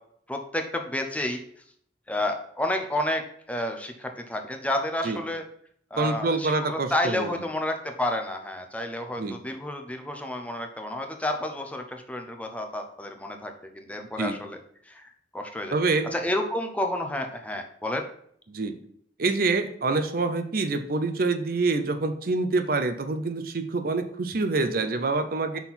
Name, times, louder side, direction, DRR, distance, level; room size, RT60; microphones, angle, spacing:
voice 1, 0.3-1.4 2.1-3.2 3.5-5.4 5.9-14.6 14.9-15.7 16.1-18.0, left 1 dB, 10° left, 4 dB, 0.7 m, -30 dB
voice 2, 6.0-7.3 9.2-9.4 14.2-14.4 15.7-16.1 18.5-18.7 19.2-25.6, right 3 dB, 50° right, 8 dB, 0.6 m, -26 dB
5.8 x 4.4 x 5.7 m, 0.64 s
head